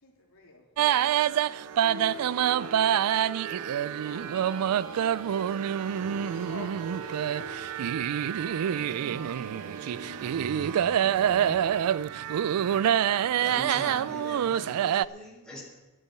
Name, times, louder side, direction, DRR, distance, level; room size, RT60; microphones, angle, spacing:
voice 1, 0.0-0.6 1.2-4.3 5.9-7.5 10.2-10.7, left 2 dB, 70° left, -1 dB, 2.8 m, -49 dB
sound 1, 0.8-15.1, right 10 dB, 90° right, 0.3 m, -26 dB
sound 2, 1.8-11.6, equal, 75° right, 2.5 m, -44 dB
voice 2, 10.3-13.3, equal, 10° right, -3 dB, 2.0 m, -57 dB
voice 3, 13.4-15.6, left 1 dB, 5° left, -4 dB, 4.3 m, -41 dB
12.0 x 7.4 x 9.2 m, 1.2 s
head